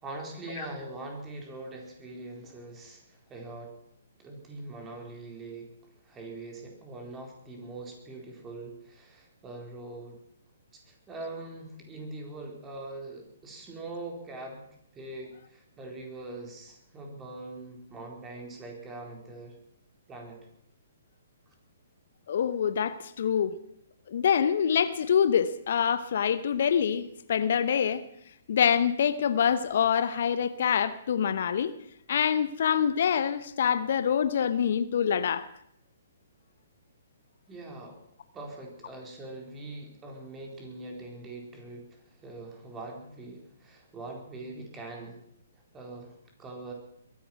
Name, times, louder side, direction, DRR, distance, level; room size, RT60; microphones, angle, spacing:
voice 1, 0.0-3.7 4.2-5.7 6.0-10.2 10.7-14.6 14.9-19.5 20.1-20.4 21.5-21.6 37.5-38.0 38.3-45.2 45.7-46.7, right 2 dB, 15° right, 4.1 m, -42 dB
voice 2, 22.3-23.6 24.1-28.0 28.5-31.7 32.1-35.4, left 8 dB, 55° left, 0.8 m, -25 dB
22.0 x 10.5 x 6.0 m
figure-of-eight pair, 125°, 0 cm